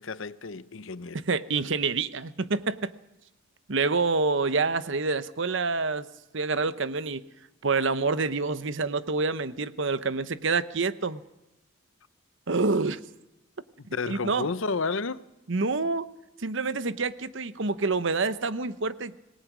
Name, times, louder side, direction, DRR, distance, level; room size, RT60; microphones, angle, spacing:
voice 1, 0.0-1.2 13.9-15.2, left 4 dB, 70° left, 0.8 m, -31 dB
voice 2, 1.1-2.9 3.7-6.1 6.3-7.2 7.6-11.2 12.5-13.0 14.1-14.5 15.5-16.1 16.4-19.1, right 4 dB, 60° right, 0.9 m, -27 dB
26.5 x 19.5 x 6.1 m
head